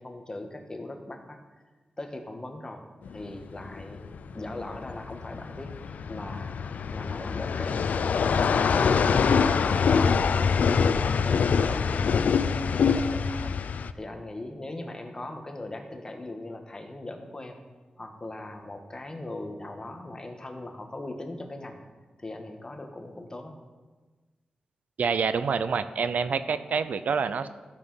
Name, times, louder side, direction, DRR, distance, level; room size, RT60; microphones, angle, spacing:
voice 1, 0.0-1.4 2.0-2.8 3.1-6.6 6.9-10.9 11.2-13.5 13.9-17.6 18.0-21.8 22.2-23.6, left 2 dB, 25° left, 4 dB, 1.5 m, -39 dB
sound 1, 3.1-13.9, left 6 dB, 85° left, 0.5 m, -25 dB
voice 2, 25.0-27.5, right 5 dB, 80° right, 12 dB, 0.6 m, -27 dB
13.5 x 7.4 x 5.7 m, 1.3 s
wide cardioid pair, 95°, 3 cm